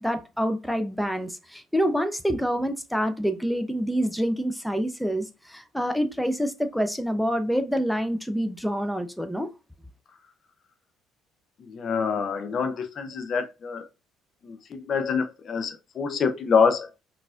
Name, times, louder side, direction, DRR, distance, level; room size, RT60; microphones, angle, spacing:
voice 1, 0.0-9.5, equal, ahead, 0.5 m, -27 dB
voice 2, 11.6-13.9 14.4-17.0, left 6 dB, 50° left, 0.5 m, -26 dB
3.9 x 2.5 x 2.3 m
hypercardioid pair, 60°, 0 cm